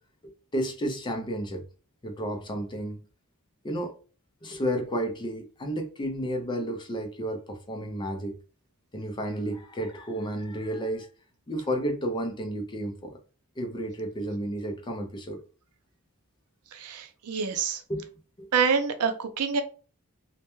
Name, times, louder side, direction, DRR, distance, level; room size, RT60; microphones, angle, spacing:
voice 1, 0.5-1.6 2.0-3.0 3.6-3.9 4.4-8.4 8.9-11.1 11.5-13.2 13.6-15.4 17.9-18.1 18.4-18.5, equal, 20° left, 0.4 m, -32 dB
voice 2, 16.7-17.8 18.5-19.6, right 6 dB, 80° right, 0.5 m, -26 dB
2.2 x 2.1 x 3.0 m
head